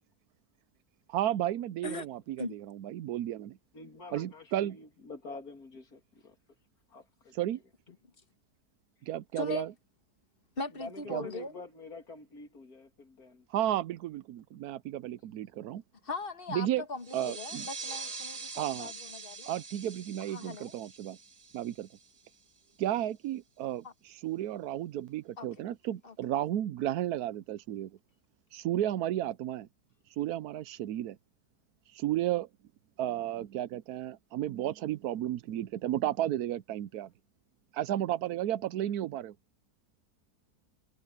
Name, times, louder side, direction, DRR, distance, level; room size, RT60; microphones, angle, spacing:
voice 1, 1.1-3.6 4.1-4.8 7.4-7.6 9.0-9.7 11.1-11.3 13.5-15.8 16.5-16.8 17.1-17.7 18.5-18.9 19.5-21.2 21.5-21.9 22.8-27.9 28.5-29.7 30.2-31.2 31.9-32.5 33.0-37.1 37.7-39.3, right 12 dB, 90° right, 1.2 m, -33 dB
voice 2, 3.7-6.4 6.9-7.3 10.7-13.5 15.1-15.3, left 2 dB, 75° left, 3.4 m, -47 dB
voice 3, 10.6-11.5 16.0-19.5 20.3-20.7 23.8-23.9 25.4-25.5 26.0-26.1, left 3 dB, 35° left, 1.9 m, -39 dB
sound 1, 17.0-22.3, right 4 dB, 25° right, 1.3 m, -44 dB
omnidirectional pair, 1.6 m